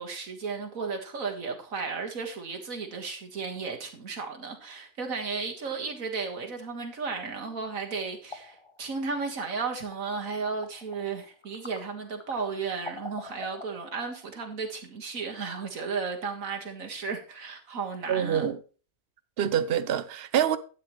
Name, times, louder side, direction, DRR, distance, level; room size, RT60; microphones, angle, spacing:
voice 1, 0.0-18.5, right 4 dB, 85° right, 2.1 m, -34 dB
sound 1, 7.7-14.3, left 3 dB, 25° left, 0.9 m, -47 dB
voice 2, 18.1-18.6 19.4-20.6, right 9 dB, 55° right, 0.9 m, -26 dB
12.0 x 8.9 x 3.1 m
omnidirectional pair, 1.4 m